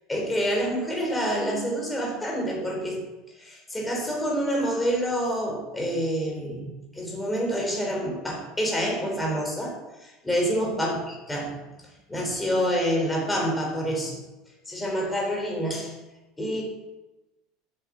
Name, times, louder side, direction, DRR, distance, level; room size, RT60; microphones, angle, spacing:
voice 1, 0.1-3.1 3.4-10.9 11.3-11.6 12.1-14.2 14.7-15.9 16.4-16.6, equal, 10° left, -2 dB, 3.8 m, -27 dB
9.7 x 8.5 x 7.5 m, 1.1 s
cardioid pair, 150°, 0 cm